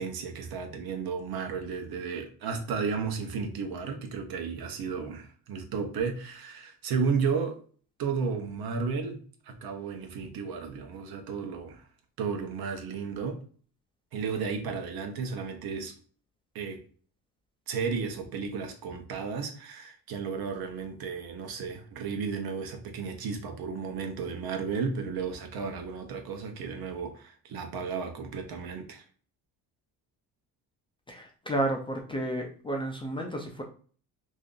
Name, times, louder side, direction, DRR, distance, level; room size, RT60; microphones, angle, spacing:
voice 1, 0.0-7.6 8.0-11.9 12.2-13.4 14.1-15.9 16.5-16.8 17.7-29.0, right 5 dB, 70° right, 0.8 m, -33 dB
voice 2, 31.1-33.6, right 1 dB, 15° left, 0.3 m, -31 dB
2.6 x 2.4 x 3.7 m
cardioid pair, 135°, 38 cm